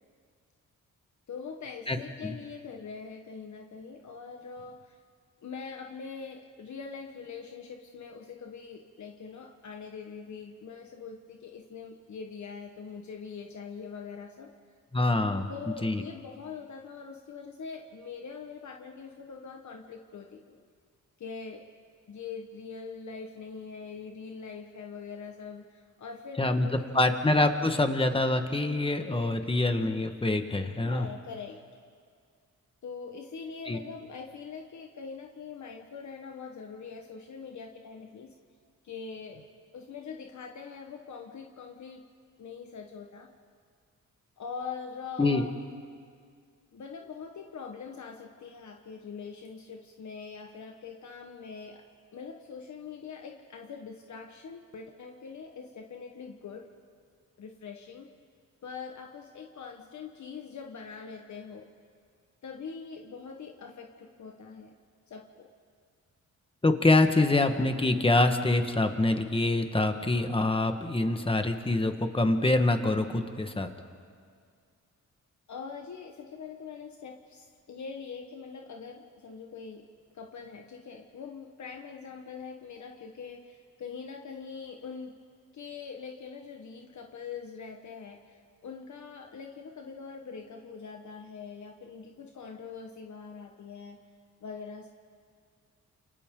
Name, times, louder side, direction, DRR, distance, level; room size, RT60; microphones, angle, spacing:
voice 1, 1.3-5.0 5.4-14.5 15.5-20.6 21.2-21.7 22.1-27.5 30.8-31.6 32.8-38.3 38.8-39.5 39.7-42.0 42.4-43.3 44.4-45.5 46.7-51.8 52.1-56.7 57.4-58.1 58.6-61.7 62.4-64.7 65.1-65.5 75.5-79.9 80.1-85.2 85.5-94.0 94.4-94.9, left 5 dB, 65° left, 2 dB, 1.4 m, -43 dB
voice 2, 14.9-15.5 15.8-16.0 26.4-31.1 33.7-33.8 45.2-45.4 66.6-73.7, left 2 dB, 15° left, 6 dB, 1.5 m, -25 dB
29.0 x 28.5 x 3.8 m, 2.1 s
cardioid pair, 105°, 32 cm